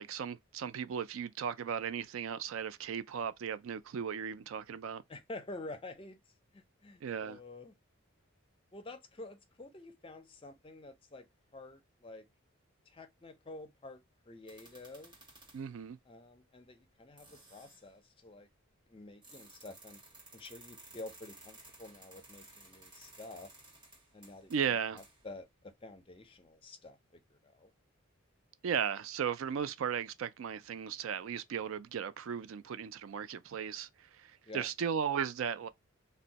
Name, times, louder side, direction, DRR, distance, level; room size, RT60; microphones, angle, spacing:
voice 1, 0.0-5.0 7.0-7.4 15.5-16.0 24.5-25.0 28.6-35.7, right 7 dB, 70° right, 0.3 m, -36 dB
voice 2, 5.1-6.2 6.5-7.7 8.7-11.3 11.5-12.3 12.9-14.0 14.3-15.2 16.1-18.5 18.9-20.0 20.3-23.5 24.1-27.7 34.5-34.7, left 2 dB, 25° left, 0.5 m, -49 dB
sound 1, 14.5-15.8 16.7-16.8 17.2-17.9 19.2-25.3, right 2 dB, 20° right, 1.3 m, -56 dB
2.6 x 2.1 x 3.9 m
head